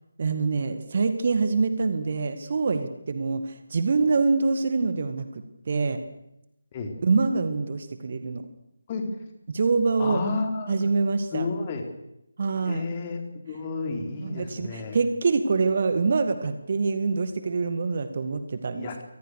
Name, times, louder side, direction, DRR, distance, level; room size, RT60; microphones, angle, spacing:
voice 1, 0.2-6.0 7.0-8.5 9.5-10.2 10.7-11.5 12.4-12.8 14.2-19.0, right 4 dB, 40° right, 10 dB, 2.0 m, -25 dB
voice 2, 10.0-10.9 11.3-11.9 12.7-13.2 13.5-15.0 18.7-19.0, left 3 dB, 25° left, 4 dB, 4.2 m, -31 dB
28.5 x 24.5 x 6.7 m, 0.85 s
figure-of-eight pair, 155°, 0 cm